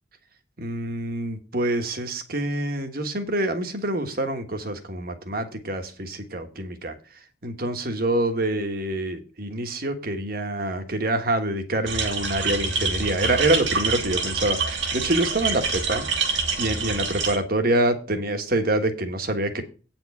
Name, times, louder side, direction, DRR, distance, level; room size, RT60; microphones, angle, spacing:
voice 1, 0.6-6.9 7.4-19.6, right 1 dB, 50° right, 7 dB, 1.3 m, -26 dB
sound 1, 11.9-17.4, right 4 dB, 75° right, 1.8 m, -26 dB
9.0 x 4.5 x 7.1 m, 0.37 s
head